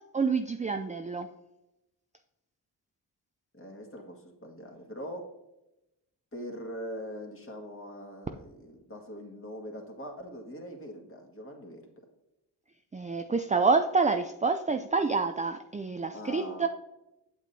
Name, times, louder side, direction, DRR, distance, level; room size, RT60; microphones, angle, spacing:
voice 1, 0.1-1.3 12.9-16.7, right 4 dB, 15° right, 6 dB, 0.4 m, -27 dB
voice 2, 3.5-5.2 6.3-11.8 16.1-16.7, equal, 30° left, 0 dB, 2.0 m, -42 dB
8.3 x 7.3 x 2.7 m, 0.94 s
cardioid pair, 60°, 45 cm